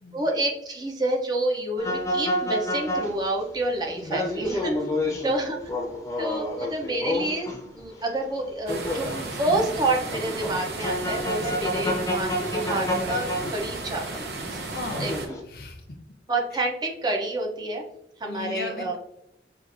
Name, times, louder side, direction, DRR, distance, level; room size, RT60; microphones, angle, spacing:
voice 1, 0.1-4.9 5.2-5.6 6.2-9.1 9.3-14.6 15.0-15.1 16.3-17.8 18.2-19.0, right 2 dB, 25° right, 0 dB, 0.6 m, -28 dB
sound 1, 1.8-7.8 8.4-14.4 14.8-15.4, left 1 dB, 20° left, 0.7 m, -29 dB
voice 2, 3.9-4.2 4.9-5.1 9.4-9.7 11.3-11.9 14.7-15.2 15.5-15.9 16.5-16.6 18.2-19.0, left 3 dB, 55° left, 3 dB, 0.7 m, -37 dB
sound 2, 8.7-15.3, right 2 dB, 65° right, 0.7 m, -34 dB
5.7 x 2.5 x 2.5 m, 0.82 s
head